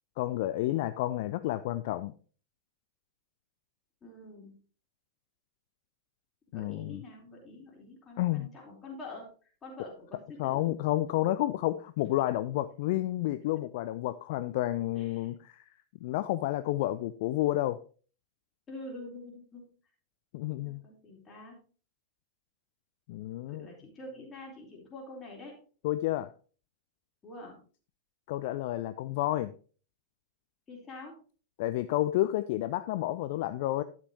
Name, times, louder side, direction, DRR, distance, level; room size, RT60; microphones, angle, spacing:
voice 1, 0.2-2.1 6.5-7.0 8.2-8.5 10.4-15.7 16.0-17.8 20.3-20.8 23.1-23.7 25.8-26.3 28.3-29.5 31.6-33.8, left 15 dB, 50° left, 13 dB, 0.4 m, -30 dB
voice 2, 4.0-4.6 6.5-10.8 14.9-15.3 18.7-19.7 20.5-21.6 23.5-25.6 27.2-27.6 30.7-31.1, left 2 dB, 25° left, -1 dB, 3.8 m, -46 dB
11.5 x 7.3 x 3.1 m, 0.39 s
figure-of-eight pair, 90°, 0 cm